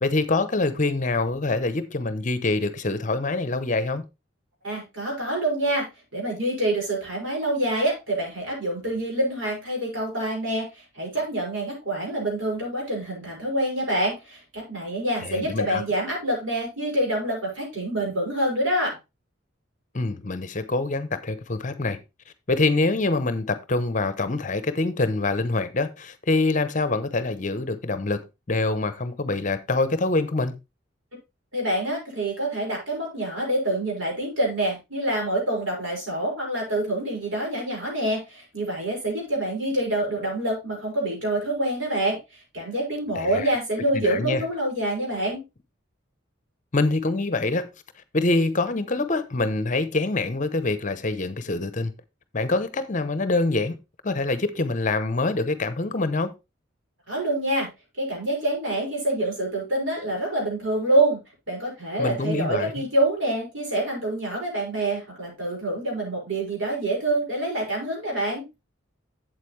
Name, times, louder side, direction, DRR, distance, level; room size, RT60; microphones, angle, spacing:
voice 1, 0.0-4.0 15.2-15.8 19.9-22.0 22.5-28.2 28.5-30.5 43.1-43.5 43.9-44.4 46.7-47.7 48.1-51.9 52.3-53.8 54.0-56.3 62.0-62.8, left 2 dB, 40° left, 0.8 m, -25 dB
voice 2, 4.6-19.0 31.5-45.4 57.1-57.7 58.0-61.2 61.5-68.5, right 1 dB, 85° right, 5.7 m, -26 dB
8.2 x 7.8 x 3.2 m
head